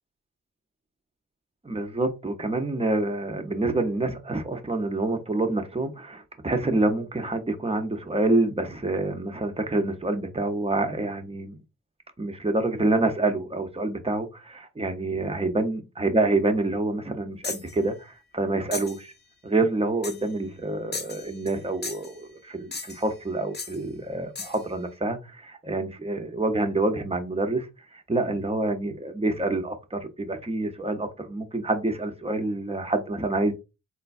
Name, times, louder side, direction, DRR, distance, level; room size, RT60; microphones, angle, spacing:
voice 1, 1.6-11.6 12.2-19.1 19.4-27.7 27.9-33.5, right 2 dB, 20° right, 0.7 m, -27 dB
sound 1, 17.4-17.7 18.7-19.0 20.0-20.3 20.9-21.6 21.8-22.2 22.7-23.1 23.5-23.8 24.4-24.6, left 4 dB, 30° left, 0.7 m, -36 dB
3.8 x 2.2 x 2.5 m
cardioid pair, 50°, 32 cm